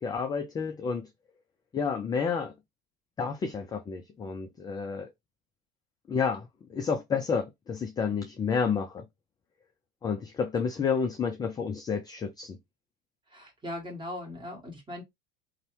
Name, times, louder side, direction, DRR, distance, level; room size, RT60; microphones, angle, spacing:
voice 1, 0.0-1.1 1.7-2.5 3.2-5.1 6.1-9.0 10.0-12.6, left 6 dB, 15° left, 0.3 m, -30 dB
voice 2, 13.3-15.0, left 1 dB, 15° right, 1.4 m, -39 dB
2.6 x 2.1 x 3.0 m
figure-of-eight pair, 75°, 30 cm